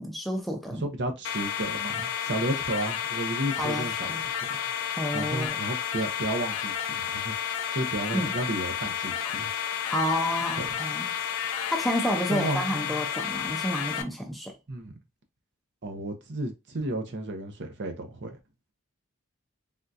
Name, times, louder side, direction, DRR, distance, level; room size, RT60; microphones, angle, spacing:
voice 1, 0.0-0.9 3.6-4.2 5.0-5.6 8.1-8.3 9.9-11.1 11.7-14.6, equal, ahead, 0.5 m, -30 dB
voice 2, 0.7-4.1 4.5-4.6 5.1-7.3 7.7-9.5 10.6-10.7 12.3-13.1 14.7-15.0 15.8-18.4, right 1 dB, 55° right, 0.7 m, -32 dB
sound 1, 1.2-14.0, left 9 dB, 70° left, 0.4 m, -31 dB
3.6 x 2.3 x 2.6 m
head